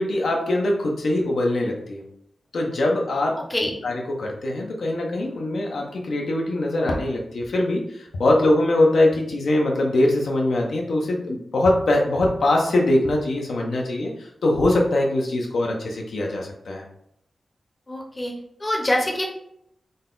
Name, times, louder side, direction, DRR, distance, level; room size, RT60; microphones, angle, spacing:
voice 1, 0.0-2.0 2.5-3.3 3.8-14.1 14.4-16.8, left 1 dB, 85° left, 0 dB, 0.7 m, -22 dB
voice 2, 3.4-3.7 17.9-18.3 18.6-19.2, left 1 dB, 20° left, 0 dB, 0.7 m, -25 dB
3.9 x 2.2 x 3.8 m, 0.76 s
wide cardioid pair, 110°, 0 cm